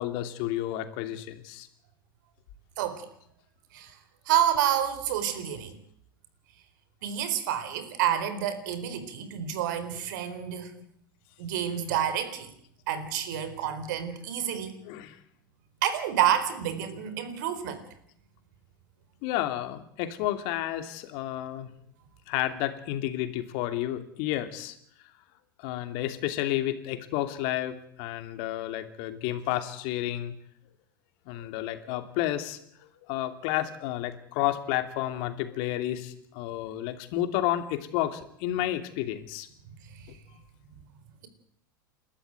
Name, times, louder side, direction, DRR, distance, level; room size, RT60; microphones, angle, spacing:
voice 1, 0.0-1.7 14.8-15.2 19.2-21.7 22.3-24.8 25.6-30.4 31.3-39.5, left 13 dB, 55° left, 9 dB, 2.8 m, -31 dB
voice 2, 2.8-3.1 3.7-3.9 4.3-5.7 7.0-10.7 11.4-12.5 12.9-14.8 15.8-17.8 39.9-40.0, right 10 dB, 60° right, 11 dB, 4.2 m, -28 dB
29.0 x 13.0 x 9.3 m, 0.71 s
hypercardioid pair, 90°, 11 cm